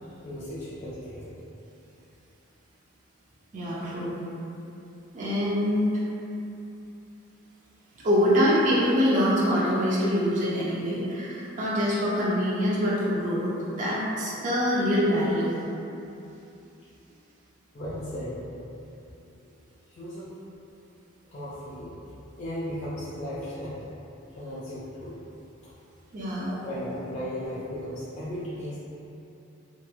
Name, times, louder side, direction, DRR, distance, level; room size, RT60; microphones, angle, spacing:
voice 1, 0.0-1.3 17.7-18.4 19.4-19.5 19.9-20.3 21.3-21.9 22.4-23.8 24.4-25.1 26.5-28.8, equal, 35° left, -11 dB, 0.3 m, -36 dB
voice 2, 3.5-4.2 5.1-6.0 8.0-15.5 26.1-26.6, equal, 35° right, -8 dB, 0.4 m, -24 dB
2.9 x 2.2 x 2.3 m, 2.8 s
head